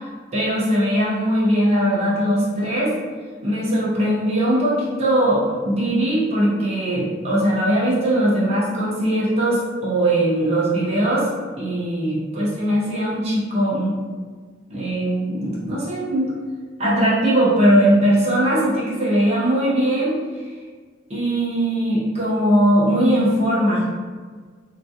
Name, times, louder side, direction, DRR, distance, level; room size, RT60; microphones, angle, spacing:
voice 1, 0.3-2.9 3.4-11.3 11.6-13.9 14.7-16.3 16.8-20.2 21.1-23.8, right 1 dB, 35° right, -8 dB, 0.7 m, -20 dB
3.6 x 2.3 x 2.7 m, 1.5 s
head